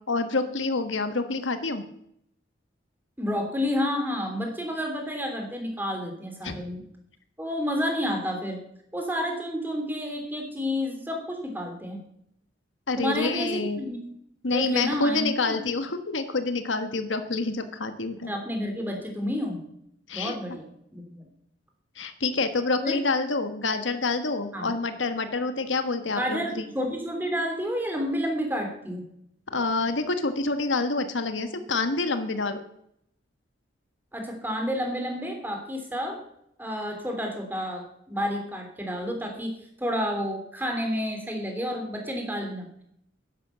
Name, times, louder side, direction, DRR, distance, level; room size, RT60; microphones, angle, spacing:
voice 1, 0.1-1.8 6.4-6.5 12.9-13.8 14.4-18.3 20.1-20.3 22.0-26.7 29.5-32.6, left 3 dB, 75° left, 9 dB, 1.4 m, -27 dB
voice 2, 3.2-6.8 7.4-8.6 8.9-12.0 13.0-14.0 14.5-15.5 18.2-19.6 20.1-21.3 22.8-23.0 24.5-24.7 26.2-29.0 34.1-36.2 36.6-39.5 39.8-42.7, equal, 10° right, 3 dB, 3.2 m, -30 dB
12.0 x 11.0 x 6.8 m, 0.73 s
head